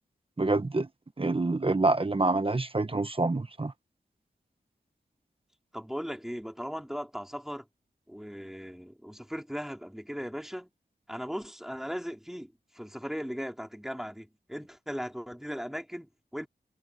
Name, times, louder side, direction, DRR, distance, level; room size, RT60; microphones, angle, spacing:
voice 1, 0.4-0.9 1.2-3.7, right 2 dB, 30° right, 1.2 m, -26 dB
voice 2, 5.7-7.6 8.1-10.7 11.1-16.5, equal, ahead, 3.0 m, -38 dB
wide cardioid pair, 70°, 17 cm